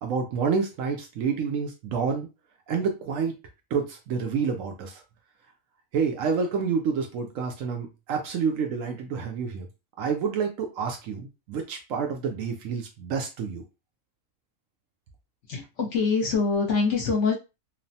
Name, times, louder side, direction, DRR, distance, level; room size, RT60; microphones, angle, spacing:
voice 1, 0.0-2.3 2.7-3.3 3.7-5.0 5.9-9.7 10.0-13.6, right 5 dB, 70° right, 4 dB, 0.9 m, -28 dB
voice 2, 15.5-17.3, left 4 dB, 60° left, 0 dB, 1.0 m, -24 dB
3.1 x 2.0 x 2.7 m, 0.27 s
omnidirectional pair, 1.6 m